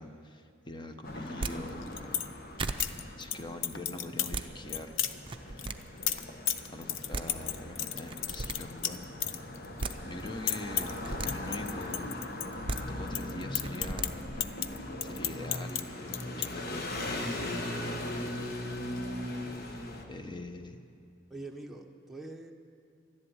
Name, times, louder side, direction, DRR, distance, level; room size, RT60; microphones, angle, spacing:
voice 1, 0.0-2.4 2.9-4.9 5.4-5.8 6.7-9.5 10.0-12.2 12.8-14.3 15.0-18.5 20.1-20.8, left 2 dB, 25° left, 7 dB, 0.9 m, -43 dB
sound 1, 1.0-20.1, left 1 dB, 50° left, 1.3 m, -40 dB
sound 2, 1.3-1.6 2.2-2.3 2.6-2.9 4.1-4.5 5.2-5.8 6.8-6.9 7.1-7.3 8.1-8.6 9.5-10.0 10.8-11.3 12.4-12.8 13.6-14.1, right 3 dB, 25° right, 0.6 m, -35 dB
sound 3, 1.7-2.3 2.6-3.4 3.6-4.3 4.7-5.1 5.6-9.9 10.2-11.0 11.3-12.8 13.1-15.8 16.1-16.5, left 10 dB, 75° left, 0.7 m, -33 dB
voice 2, 21.3-22.5, right 2 dB, ahead, 0 dB, 1.0 m, -44 dB
12.5 x 11.0 x 9.8 m, 2.5 s
head